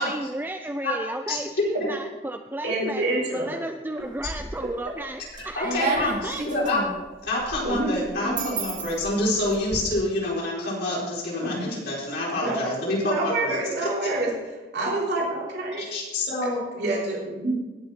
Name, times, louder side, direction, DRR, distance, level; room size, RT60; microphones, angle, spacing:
voice 1, 0.0-3.1 3.3-6.4, right 1 dB, 10° right, 6 dB, 0.4 m, -33 dB
voice 2, 1.3-1.6 5.3-6.8 7.2-14.1 15.8-16.6, left 1 dB, 65° left, -5 dB, 4.7 m, -27 dB
voice 3, 2.6-3.6 4.0-4.1 4.6-4.7 7.6-8.5 11.4-11.7 12.4-12.6 13.0-14.3 14.7-15.8 16.7-17.5, right 2 dB, 70° right, -4 dB, 3.1 m, -27 dB
sound 1, 4.0-4.7 5.1-9.8, right 3 dB, 45° right, 2.4 m, -32 dB
19.0 x 6.6 x 4.3 m, 1.2 s
head